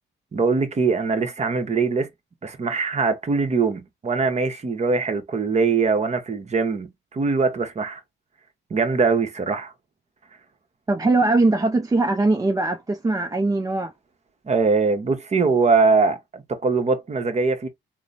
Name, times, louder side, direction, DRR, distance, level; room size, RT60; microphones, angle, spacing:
voice 1, 0.3-2.1 2.4-8.0 8.7-9.7 14.5-17.7, right 4 dB, 35° right, 0.9 m, -22 dB
voice 2, 10.9-13.9, right 2 dB, 15° right, 0.4 m, -21 dB
3.0 x 2.0 x 3.8 m
cardioid pair, 90°, 20 cm